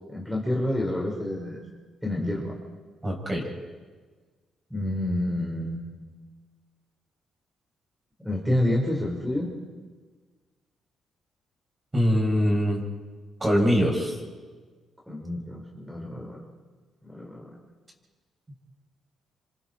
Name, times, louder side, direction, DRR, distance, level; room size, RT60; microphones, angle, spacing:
voice 1, 0.1-1.6 2.0-2.6 4.7-6.2 8.2-9.6 15.1-16.4 17.0-17.6, left 1 dB, ahead, -2 dB, 5.3 m, -29 dB
voice 2, 3.0-3.5 11.9-12.8 13.4-14.2, equal, 25° right, 0 dB, 7.9 m, -23 dB
28.0 x 25.5 x 4.7 m, 1.4 s
supercardioid pair, 70°, 0 cm